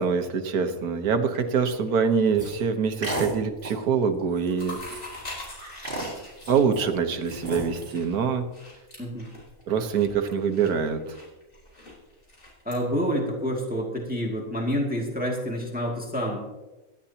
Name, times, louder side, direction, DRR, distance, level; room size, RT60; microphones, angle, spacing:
voice 1, 0.0-5.0 6.5-8.5 9.7-11.1, right 6 dB, 80° right, 7 dB, 1.7 m, -25 dB
sound 1, 1.2-2.4 2.7-3.2 3.4-3.8 4.1-12.8, left 2 dB, 45° left, 4.4 m, -43 dB
sound 2, 2.4-2.6 3.0-3.3 3.6-3.8 4.4-4.5 4.7-5.2 5.8-6.9 7.3-8.0, right 2 dB, 35° right, 3.2 m, -33 dB
voice 2, 12.7-16.4, equal, 5° right, -1 dB, 2.3 m, -28 dB
18.0 x 12.5 x 2.9 m, 1.1 s
omnidirectional pair, 1.6 m